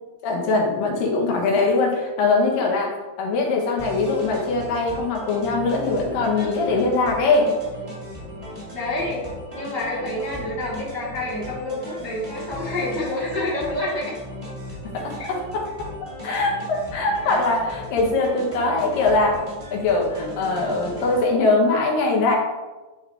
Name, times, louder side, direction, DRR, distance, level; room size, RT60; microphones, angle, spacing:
voice 1, 0.2-7.5 14.9-15.9 16.2-19.4 19.7-22.4, left 3 dB, 90° left, 0 dB, 2.9 m, -22 dB
sound 1, 3.8-21.2, left 1 dB, 90° right, 0.3 m, -37 dB
voice 2, 6.3-6.8 8.7-9.2 9.5-14.1 15.2-15.3 17.2-17.4, left 1 dB, 10° right, -8 dB, 1.3 m, -28 dB
11.0 x 3.7 x 3.5 m, 1.2 s
omnidirectional pair, 3.9 m